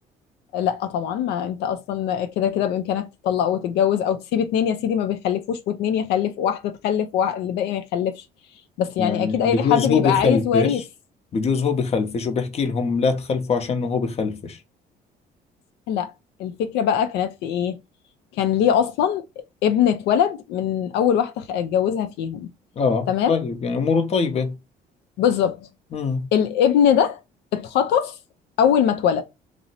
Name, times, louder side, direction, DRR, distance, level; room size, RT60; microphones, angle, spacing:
voice 1, 0.5-8.2 8.8-10.8 15.9-16.1 16.4-17.8 18.3-19.2 19.6-22.5 23.1-23.3 25.2-25.6 26.3-27.2 27.5-28.2 28.6-29.2, left 9 dB, 85° left, 0.4 m, -22 dB
voice 2, 9.0-10.8 11.3-14.6 22.8-24.6 25.9-26.3, left 5 dB, 40° left, 0.7 m, -23 dB
2.6 x 2.0 x 3.9 m
cardioid pair, 110°, 17 cm